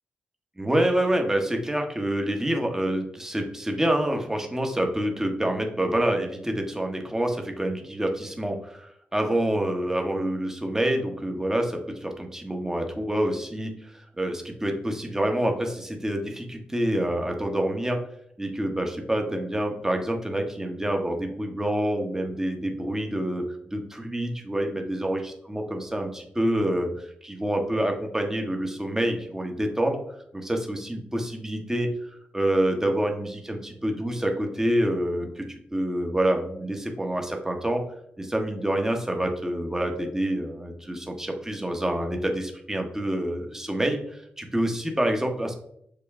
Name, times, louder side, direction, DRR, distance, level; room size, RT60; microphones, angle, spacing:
voice 1, 0.6-18.0 18.4-23.4 23.7-30.0 30.3-37.8 38.2-45.6, right 1 dB, 15° right, 3 dB, 1.0 m, -27 dB
6.7 x 2.2 x 3.5 m, 0.71 s
cardioid pair, 50°, 4 cm